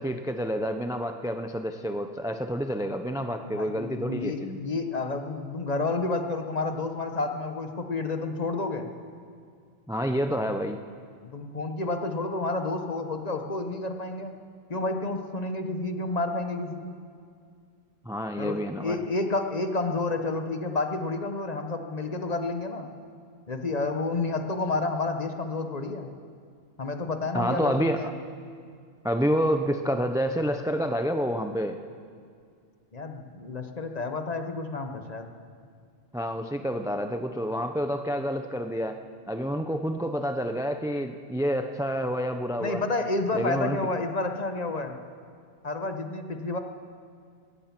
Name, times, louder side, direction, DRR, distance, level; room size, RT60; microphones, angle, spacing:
voice 1, 0.0-4.6 9.9-10.8 18.0-19.0 27.3-28.0 29.0-31.8 36.1-39.0 39.3-42.8 43.3-43.8, equal, 5° right, 7 dB, 0.3 m, -28 dB
voice 2, 3.4-8.9 11.2-14.3 14.7-16.9 18.4-22.9 23.5-26.1 26.8-28.1 32.9-35.3 42.6-45.0 45.6-46.6, left 3 dB, 35° left, 6 dB, 1.1 m, -30 dB
17.0 x 14.0 x 6.0 m, 2.2 s
omnidirectional pair, 1.2 m